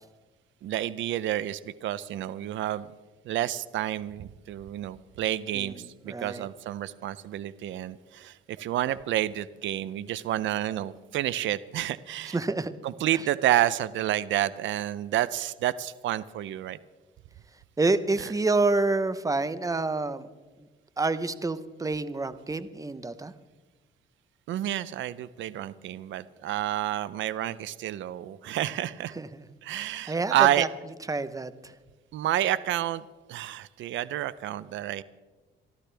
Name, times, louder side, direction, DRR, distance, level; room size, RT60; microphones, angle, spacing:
voice 1, 0.6-2.9 3.3-12.4 12.8-16.8 18.2-18.3 24.5-29.1 29.6-30.7 32.1-35.0, right 13 dB, 75° right, 17 dB, 0.6 m, -29 dB
voice 2, 6.1-6.5 12.3-12.7 17.8-20.3 21.0-23.3 29.2-29.4 29.7-30.7 31.1-31.7, right 3 dB, 15° right, 13 dB, 0.9 m, -28 dB
28.5 x 12.0 x 3.4 m, 1.3 s
cardioid pair, 90°, 20 cm